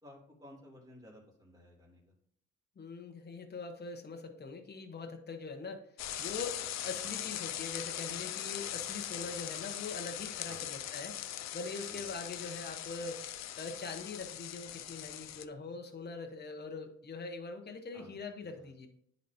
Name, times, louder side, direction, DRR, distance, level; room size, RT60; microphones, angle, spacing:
voice 1, 0.0-2.1 6.6-6.7 10.5-10.8 11.9-12.2 17.9-18.7, left 1 dB, 10° right, -3 dB, 3.0 m, -56 dB
voice 2, 2.8-11.2 11.5-13.2 13.6-18.9, left 4 dB, 35° left, 4 dB, 1.0 m, -43 dB
sound 1, 6.0-15.5, left 12 dB, 60° left, 0.5 m, -40 dB
10.0 x 4.2 x 2.8 m, 0.68 s
cardioid pair, 90°, 30 cm